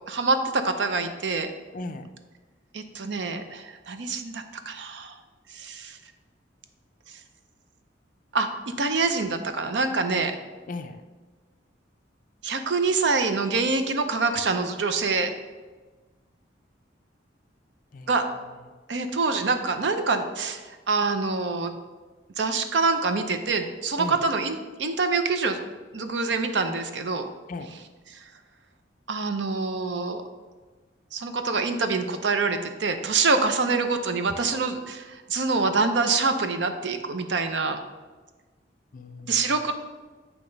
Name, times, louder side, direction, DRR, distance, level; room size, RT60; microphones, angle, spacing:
voice 1, 0.1-1.5 2.7-5.1 5.5-6.0 8.3-10.3 12.4-15.3 18.1-18.3 18.9-21.8 22.4-25.6 25.9-27.3 28.1-28.2 29.1-30.2 31.1-37.8 39.3-39.7, right 4 dB, 70° right, 8 dB, 0.6 m, -25 dB
voice 2, 1.7-2.1 10.7-11.0 17.9-18.2 24.0-24.2 27.5-27.7 38.9-39.5, left 3 dB, 45° left, 7 dB, 0.5 m, -36 dB
8.6 x 3.0 x 5.2 m, 1.3 s
head